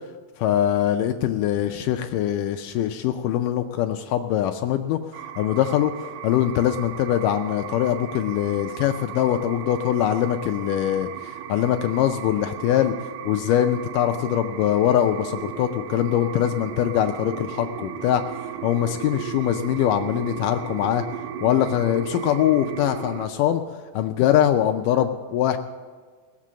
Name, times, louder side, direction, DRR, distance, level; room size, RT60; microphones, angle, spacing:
voice 1, 0.4-5.0 5.4-12.9 13.3-18.2 18.6-21.0 21.4-23.6 23.9-25.6, left 11 dB, 85° left, 6 dB, 1.8 m, -22 dB
sound 1, 5.1-23.3, right 10 dB, 85° right, 2.7 m, -36 dB
19.5 x 7.5 x 7.4 m, 1.5 s
omnidirectional pair, 4.4 m